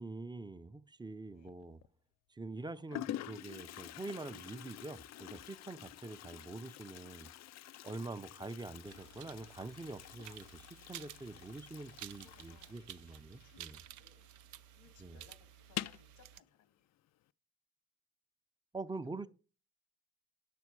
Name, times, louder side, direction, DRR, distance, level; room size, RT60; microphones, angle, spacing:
voice 1, 0.0-1.8 2.3-7.3 7.8-10.4 10.9-13.8 15.0-15.2 18.7-19.3, right 3 dB, 15° right, 0.5 m, -45 dB
Toilet flush, 1.4-1.9 2.6-2.7 2.9-14.2 14.4-14.5 14.9-15.0 15.6-16.1, left 13 dB, 60° left, 0.4 m, -47 dB
sound 1, 8.8-16.4, right 12 dB, 80° right, 0.5 m, -54 dB
voice 2, 11.6-12.0 12.2-12.8 13.2-14.3 14.7-17.0 18.8-19.3, left 7 dB, 90° left, 1.8 m, -66 dB
8.4 x 6.2 x 4.6 m
cardioid pair, 90°, 30 cm